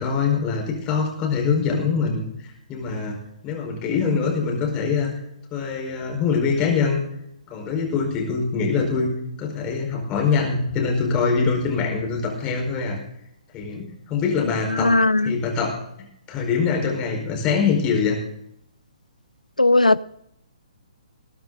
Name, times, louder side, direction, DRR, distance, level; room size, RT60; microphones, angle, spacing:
voice 1, 0.0-2.2 2.7-3.2 3.4-5.1 5.5-7.0 7.5-13.0 13.5-14.9 15.2-15.7 16.3-18.2, left 5 dB, 20° left, 4.7 m, -23 dB
voice 2, 14.8-15.3 19.6-20.0, left 2 dB, 90° left, 0.4 m, -17 dB
21.0 x 10.5 x 3.9 m
figure-of-eight pair, 130°, 4 cm